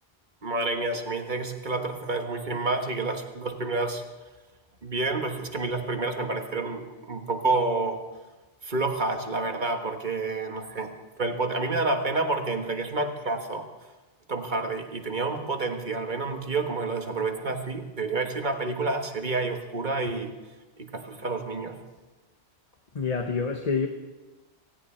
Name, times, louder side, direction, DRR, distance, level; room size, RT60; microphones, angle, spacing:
voice 1, 0.4-4.0 4.8-8.0 8.6-10.9 11.2-13.7 14.3-20.3 20.8-21.8, right 3 dB, 45° right, 5 dB, 1.6 m, -29 dB
voice 2, 22.9-23.9, left 5 dB, 40° left, 4 dB, 1.1 m, -27 dB
18.0 x 17.0 x 4.4 m, 1.2 s
omnidirectional pair, 1.1 m